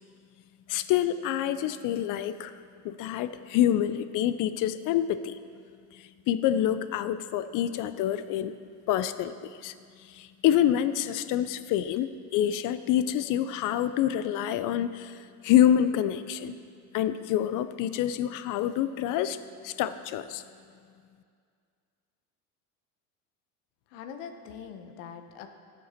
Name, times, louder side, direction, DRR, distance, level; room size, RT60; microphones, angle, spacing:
voice 1, 0.7-2.6 2.8-5.4 5.9-8.5 8.9-9.7 10.0-16.6 16.9-19.4 19.6-20.4, left 11 dB, 45° left, 13 dB, 0.5 m, -27 dB
voice 2, 23.9-25.5, left 7 dB, 75° left, 7 dB, 1.0 m, -42 dB
13.0 x 6.9 x 4.3 m, 2.2 s
supercardioid pair, 115°, 45 cm